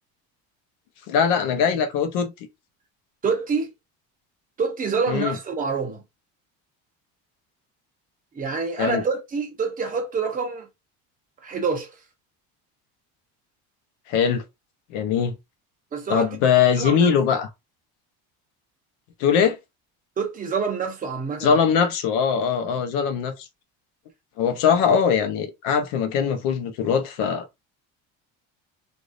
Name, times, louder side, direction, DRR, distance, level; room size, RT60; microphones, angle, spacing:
voice 1, 1.1-2.3 5.1-5.4 8.8-9.0 14.1-14.4 14.9-15.3 16.1-17.5 19.2-19.6 21.4-23.5 24.4-27.5, left 7 dB, 90° left, 0.9 m, -21 dB
voice 2, 3.2-3.7 4.6-6.0 8.3-10.7 11.4-11.9 15.9-16.3 16.8-17.1 20.2-21.6, right 5 dB, 25° right, 0.9 m, -26 dB
3.4 x 2.6 x 2.5 m
cardioid pair, 150°, 35 cm